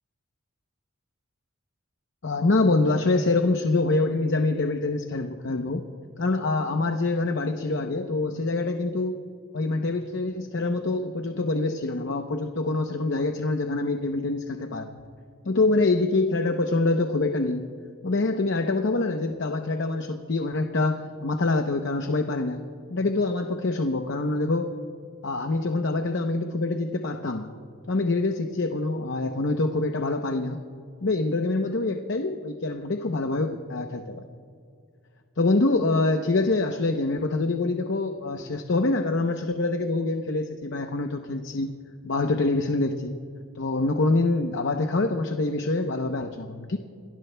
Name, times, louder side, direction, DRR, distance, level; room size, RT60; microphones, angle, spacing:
voice 1, 2.2-5.8 6.2-9.2 9.5-15.0 15.4-17.7 18.0-22.6 22.9-24.7 25.2-27.5 27.9-30.6 31.0-34.2 35.4-41.8 42.0-43.2 43.5-46.8, left 2 dB, 60° left, 5 dB, 0.8 m, -25 dB
28.0 x 18.5 x 2.2 m, 2.3 s
head